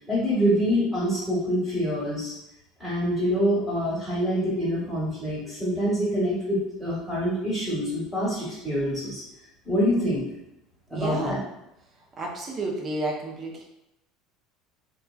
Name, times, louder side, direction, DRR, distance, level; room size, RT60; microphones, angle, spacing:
voice 1, 0.1-2.3 2.8-9.2 9.6-10.2 10.9-11.4, equal, 10° right, -10 dB, 1.4 m, -25 dB
voice 2, 10.9-11.4 12.2-13.6, right 2 dB, 35° right, -1 dB, 0.6 m, -31 dB
2.9 x 2.3 x 2.3 m, 0.87 s
supercardioid pair, 105°, 0 cm